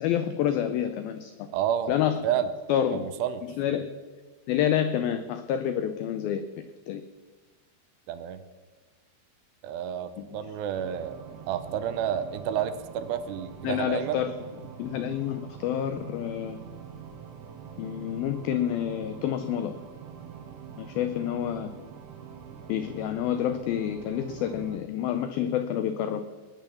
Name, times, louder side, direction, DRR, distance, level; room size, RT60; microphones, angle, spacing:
voice 1, 0.0-1.5 1.9-2.2 2.7-3.1 3.6-3.9 4.5-7.0 10.2-10.4 13.6-14.3 14.8-16.6 17.8-19.8 20.8-21.7 22.7-26.2, left 10 dB, 90° left, 10 dB, 2.1 m, -28 dB
voice 2, 1.5-1.9 2.2-2.5 2.9-3.5 8.1-8.4 9.6-11.2 11.5-14.2, right 9 dB, 75° right, 11 dB, 2.7 m, -30 dB
sound 1, 10.7-24.8, right 7 dB, 60° right, 2.3 m, -45 dB
20.5 x 9.1 x 7.1 m, 1.4 s
omnidirectional pair, 5.2 m